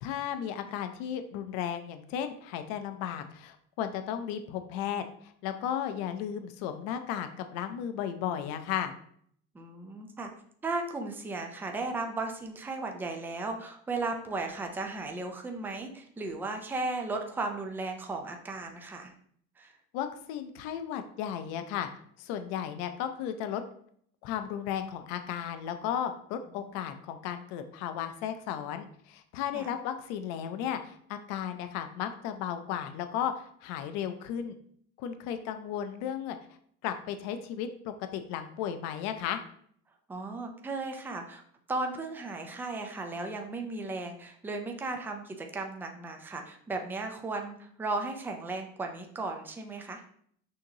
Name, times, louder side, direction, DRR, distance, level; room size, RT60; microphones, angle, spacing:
voice 1, 0.0-8.9 19.9-21.9 22.2-23.6 24.2-34.6 35.0-36.4 36.8-39.4, left 9 dB, 70° left, 8 dB, 0.6 m, -35 dB
voice 2, 9.5-10.3 10.6-19.1 19.6-19.7 29.5-29.7 40.1-41.4 41.7-50.0, right 3 dB, 5° right, 3 dB, 0.4 m, -35 dB
6.4 x 2.9 x 2.7 m, 0.63 s
cardioid pair, 150°, 29 cm